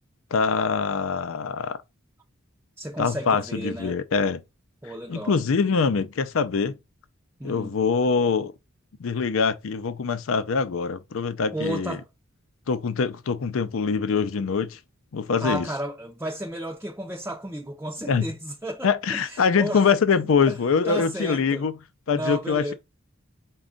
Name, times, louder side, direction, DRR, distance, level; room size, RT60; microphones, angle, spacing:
voice 1, 0.3-1.8 3.0-4.4 5.1-6.8 7.4-8.5 9.0-12.0 12.7-14.8 15.1-15.7 18.1-18.3 18.8-21.7 22.1-22.7, left 5 dB, 70° left, 0.5 m, -24 dB
voice 2, 2.8-4.0 4.8-5.4 7.4-7.8 11.5-12.0 15.4-19.8 20.5-20.6 20.8-21.6 22.1-22.7, right 1 dB, 10° right, 0.5 m, -33 dB
5.0 x 2.3 x 3.7 m
head